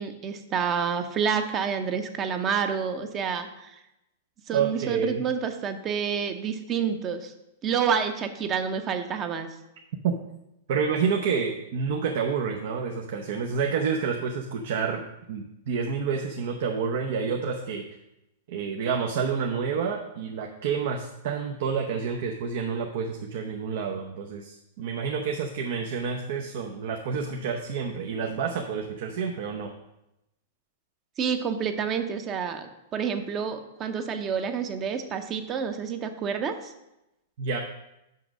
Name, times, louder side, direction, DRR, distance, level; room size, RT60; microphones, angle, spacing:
voice 1, 0.0-3.7 4.5-7.3 7.6-9.5 31.2-36.7, right 7 dB, 30° right, 8 dB, 0.8 m, -28 dB
voice 2, 4.5-5.2 10.0-10.1 10.7-17.8 18.5-29.7 37.4-37.6, right 6 dB, 65° right, 2 dB, 0.7 m, -29 dB
5.7 x 5.3 x 6.1 m, 0.89 s
hypercardioid pair, 135°, 0 cm